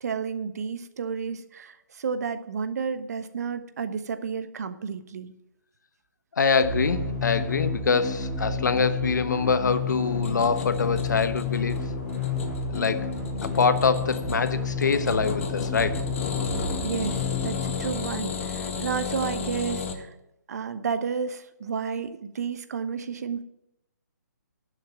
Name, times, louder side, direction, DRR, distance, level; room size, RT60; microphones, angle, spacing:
voice 1, 0.0-5.3 16.8-20.1 20.5-23.4, right 6 dB, 55° right, 1.1 m, -31 dB
voice 2, 6.4-11.8 12.7-13.1 13.4-16.0, left 5 dB, 75° left, 1.0 m, -24 dB
sound 1, 6.6-18.5, left 4 dB, 10° right, 2.6 m, -30 dB
sound 2, 9.6-19.9, left 5 dB, 45° left, 1.6 m, -34 dB
11.0 x 6.8 x 9.1 m
hypercardioid pair, 150°, 10 cm